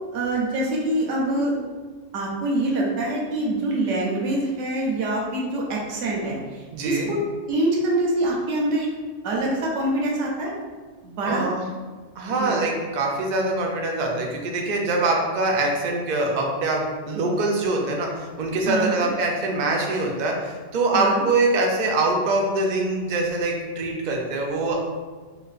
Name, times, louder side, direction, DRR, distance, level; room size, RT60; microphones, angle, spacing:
voice 1, 0.1-1.5 2.1-7.2 7.5-8.9 9.2-10.5 11.0-11.5 12.4-12.6 18.7-19.1 20.9-21.2, right 1 dB, 80° right, -3 dB, 1.0 m, -25 dB
voice 2, 6.7-7.1 11.3-11.7 12.2-24.8, right 2 dB, 60° right, 0 dB, 0.5 m, -24 dB
4.0 x 2.2 x 2.4 m, 1.4 s
omnidirectional pair, 1.3 m